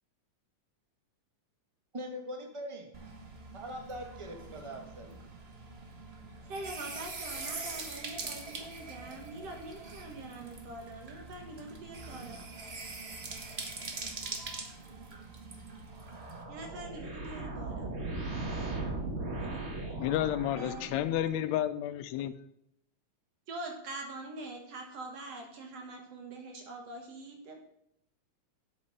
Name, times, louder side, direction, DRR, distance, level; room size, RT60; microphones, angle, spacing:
voice 1, 1.9-2.9 3.5-5.2, equal, 20° right, 0.7 m, -42 dB
sound 1, 2.9-16.4, right 3 dB, 85° right, 0.5 m, -43 dB
voice 2, 6.5-12.5 16.5-17.9 19.4-19.7 20.5-21.0 23.5-27.6, right 2 dB, 60° right, 2.6 m, -44 dB
sound 2, 15.9-21.4, right 2 dB, 40° right, 1.0 m, -38 dB
voice 3, 20.0-22.3, left 12 dB, 80° left, 1.9 m, -31 dB
8.4 x 8.2 x 5.6 m
omnidirectional pair, 3.3 m